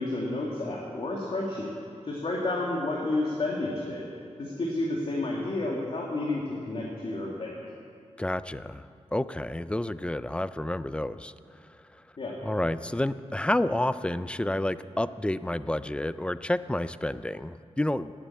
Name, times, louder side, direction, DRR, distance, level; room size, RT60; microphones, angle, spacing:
voice 1, 0.0-1.7 2.0-4.1 4.4-7.5 12.2-12.4, left 2 dB, 50° left, -3 dB, 2.1 m, -30 dB
voice 2, 8.2-8.9 9.1-11.3 11.6-11.7 12.4-18.1, left 1 dB, 10° left, 14 dB, 0.4 m, -29 dB
18.0 x 8.7 x 8.4 m, 2.4 s
wide cardioid pair, 135°, 12 cm